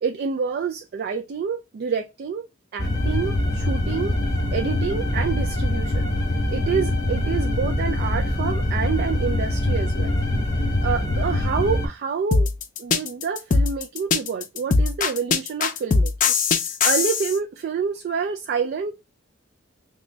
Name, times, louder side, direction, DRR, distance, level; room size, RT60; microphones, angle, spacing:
voice 1, 0.0-2.4 2.7-4.2 4.5-6.1 6.5-10.2 10.8-12.5 12.8-16.3 16.8-18.9, right 6 dB, 50° right, 0.3 m, -27 dB
sound 1, 2.8-11.9, left 1 dB, 20° left, 0.8 m, -24 dB
sound 2, 12.3-17.3, left 4 dB, 40° left, 0.4 m, -20 dB
3.2 x 2.2 x 3.8 m
head